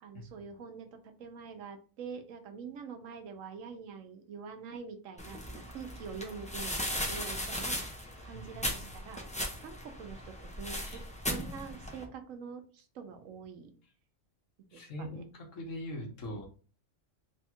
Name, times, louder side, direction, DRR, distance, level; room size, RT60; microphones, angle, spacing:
voice 1, 0.0-7.8 8.2-9.2 9.6-13.7 14.7-15.2, right 6 dB, 80° right, 6 dB, 1.0 m, -45 dB
sound 1, 5.2-12.0, equal, 10° left, 0.4 m, -37 dB
voice 2, 14.7-16.5, left 1 dB, 70° left, 1 dB, 1.4 m, -42 dB
3.4 x 2.3 x 4.2 m, 0.38 s
omnidirectional pair, 1.4 m